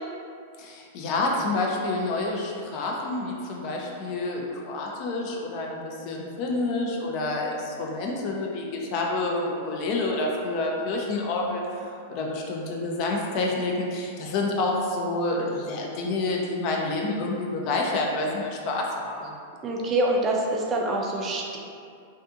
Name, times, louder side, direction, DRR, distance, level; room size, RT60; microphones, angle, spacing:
voice 1, 0.6-19.3, left 2 dB, 50° left, -1 dB, 0.4 m, -28 dB
voice 2, 19.6-21.6, right 1 dB, 30° right, -1 dB, 0.4 m, -25 dB
2.5 x 2.5 x 2.4 m, 2.4 s
hypercardioid pair, 120°, 0 cm